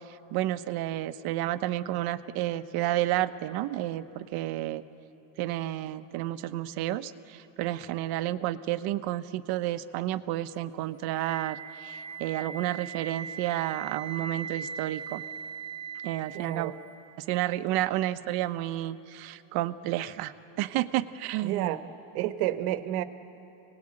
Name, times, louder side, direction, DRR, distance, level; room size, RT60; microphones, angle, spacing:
voice 1, 0.3-4.8 5.4-15.2 16.0-16.7 17.2-21.7, right 14 dB, 55° right, 11 dB, 1.1 m, -31 dB
Wind instrument woodwind instrument, 11.2-17.2, right 6 dB, 15° right, 1.0 m, -40 dB
voice 2, 16.3-16.8 21.4-21.8 22.1-23.0, right 13 dB, 85° right, 10 dB, 1.4 m, -30 dB
28.5 x 19.5 x 8.9 m, 2.8 s
cardioid pair, 145°, 44 cm